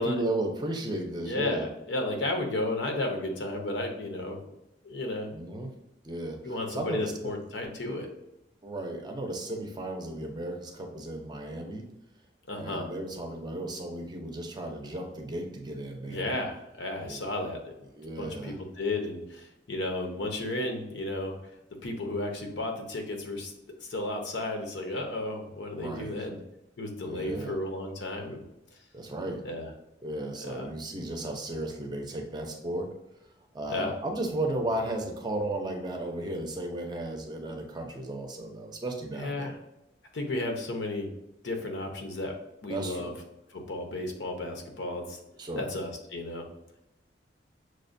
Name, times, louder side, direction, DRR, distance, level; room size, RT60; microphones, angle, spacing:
voice 1, 0.0-1.7 5.3-5.7 6.0-7.3 8.6-11.9 12.6-16.3 17.0-17.3 17.9-18.6 25.7-26.3 27.0-27.6 28.9-29.4 30.0-32.9 33.2-39.6 42.7-43.2 45.4-45.7, right 1 dB, 25° right, 3 dB, 0.5 m, -34 dB
voice 2, 1.2-4.4 4.8-5.3 6.4-8.1 12.5-12.9 16.0-17.6 18.2-21.3 21.8-23.5 23.8-26.4 26.8-28.4 29.4-29.7 30.5-30.7 33.7-33.9 39.2-39.5 40.1-41.1 41.4-42.4 42.6-43.1 43.5-45.2 45.6-46.4, left 2 dB, 90° left, 3 dB, 0.7 m, -33 dB
6.1 x 2.1 x 2.5 m, 0.89 s
head